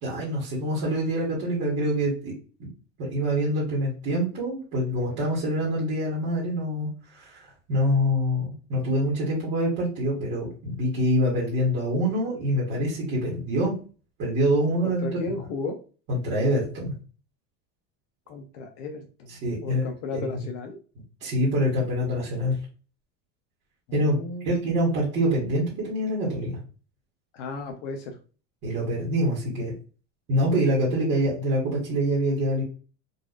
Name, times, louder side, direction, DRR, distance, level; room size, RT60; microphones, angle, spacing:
voice 1, 0.0-2.3 2.6-2.7 3.0-13.7 14.2-15.1 16.1-16.9 19.3-19.8 20.1-20.5 21.2-22.6 23.9-24.2 24.4-26.6 28.6-29.7 30.3-32.6, equal, 35° right, -6 dB, 1.2 m, -25 dB
voice 2, 14.8-15.8 18.3-19.3 19.6-20.8 24.0-24.8 27.3-28.2, left 3 dB, 70° left, 3 dB, 0.8 m, -34 dB
4.0 x 2.5 x 2.4 m, 0.36 s
cardioid pair, 180°, 39 cm